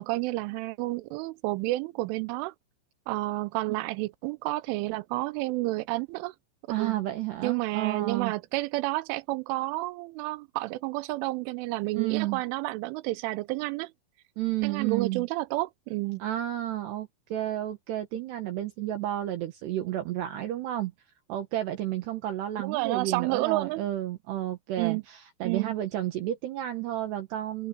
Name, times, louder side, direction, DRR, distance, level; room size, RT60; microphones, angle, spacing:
voice 1, 0.0-2.5 3.1-6.3 6.8-7.0 7.4-13.9 14.6-16.2 22.6-23.8 24.8-25.0 25.4-25.7, right 20 dB, 90° right, 3.2 m, -30 dB
voice 2, 6.7-8.3 11.9-12.4 14.4-15.3 16.2-20.9 21.3-27.7, right 13 dB, 70° right, 3.3 m, -31 dB
open air
omnidirectional pair, 5.5 m